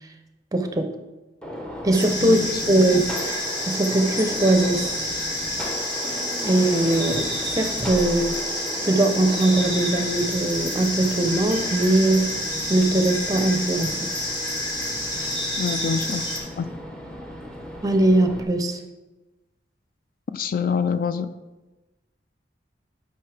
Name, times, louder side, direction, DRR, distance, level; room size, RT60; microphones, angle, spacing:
voice 1, 0.5-0.9 1.8-5.0 6.0-12.3 12.7-14.1 17.8-18.8, right 1 dB, 20° right, 7 dB, 0.6 m, -21 dB
Gunshot gunfire, 1.4-18.4, equal, 5° left, 0.9 m, -36 dB
sound 1, 1.9-16.4, left 1 dB, 25° left, 1.6 m, -29 dB
voice 2, 2.2-3.0 15.6-16.2 16.6-16.7 20.3-21.3, left 6 dB, 50° left, 12 dB, 0.3 m, -26 dB
9.2 x 5.5 x 3.4 m, 1.1 s
head